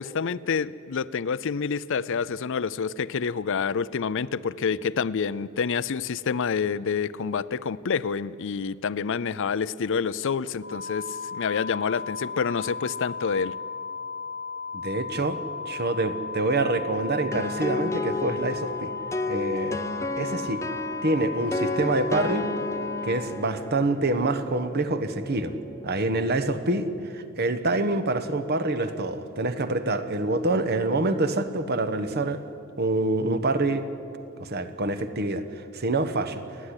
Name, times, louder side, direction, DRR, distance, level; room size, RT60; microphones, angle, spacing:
voice 1, 0.0-13.6, left 6 dB, 60° left, 18 dB, 0.5 m, -28 dB
sound 1, 10.6-23.2, left 5 dB, 20° right, 2.1 m, -35 dB
voice 2, 14.7-15.4 15.7-18.9 19.3-19.8 20.2-20.6 21.0-22.4 23.0-25.5 25.8-32.4 32.8-33.9 34.4-36.4, right 2 dB, 50° right, 9 dB, 1.1 m, -26 dB
sound 2, 17.3-26.9, left 2 dB, 15° left, 0.7 m, -33 dB
28.5 x 10.0 x 9.9 m, 2.7 s
head